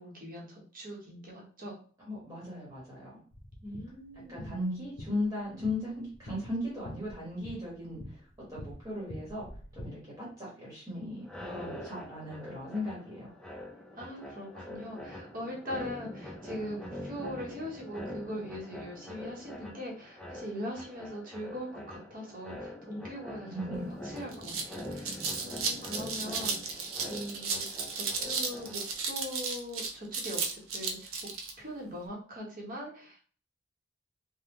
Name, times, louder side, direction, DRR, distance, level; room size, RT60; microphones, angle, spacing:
voice 1, 0.0-1.8 3.6-4.7 13.9-26.7 27.0-31.3 31.6-33.2, equal, 40° right, -2 dB, 0.9 m, -41 dB
voice 2, 2.0-3.1 4.3-9.5 9.7-13.3 23.4-23.9, left 1 dB, 15° right, -6 dB, 1.1 m, -37 dB
sound 1, 3.3-9.8, left 1 dB, 65° left, 0.8 m, -47 dB
sound 2, 11.2-29.1, left 1 dB, 5° left, 0.4 m, -44 dB
sound 3, 23.7-23.8 24.2-31.5, right 4 dB, 75° right, 0.6 m, -34 dB
3.4 x 2.1 x 2.9 m, 0.44 s
head